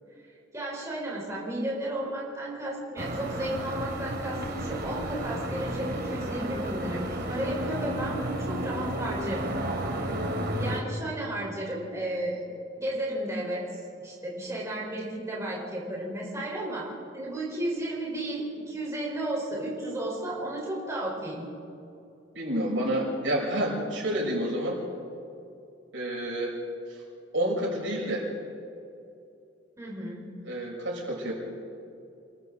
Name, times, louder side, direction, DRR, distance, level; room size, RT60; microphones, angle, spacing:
voice 1, 0.5-9.5 9.9-10.0 10.6-12.4 12.8-13.6 14.0-16.9 17.1-21.5 29.8-30.3, right 1 dB, 15° right, -5 dB, 4.6 m, -33 dB
sound 1, 3.0-10.8, right 1 dB, 55° right, 2.5 m, -32 dB
voice 2, 22.3-24.8 25.9-26.6 26.9-27.0 27.3-28.3 30.4-31.3, right 1 dB, 75° right, -3 dB, 6.5 m, -29 dB
28.5 x 22.5 x 4.0 m, 2.6 s
head